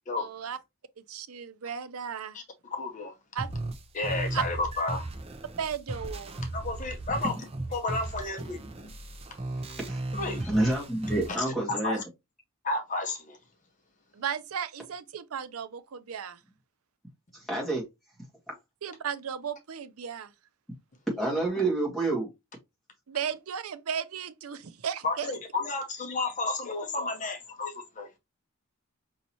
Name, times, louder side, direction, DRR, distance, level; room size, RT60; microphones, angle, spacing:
voice 1, 0.2-0.6 1.0-2.4 3.3-3.5 4.3-4.4 5.6-6.4 14.1-16.4 18.8-20.3 23.1-25.3, right 7 dB, 80° right, 0.5 m, -35 dB
voice 2, 2.3-3.1 3.9-5.1 6.5-7.4 7.7-9.0 10.1-10.5 11.4-12.0 12.6-13.4 25.0-28.1, left 3 dB, 35° left, 0.7 m, -32 dB
sound 1, 3.4-11.4, right 2 dB, 30° right, 0.6 m, -36 dB
voice 3, 10.5-12.0 17.3-17.8 18.5-18.6 21.2-22.3, right 2 dB, ahead, 1.7 m, -28 dB
5.4 x 2.8 x 2.9 m
head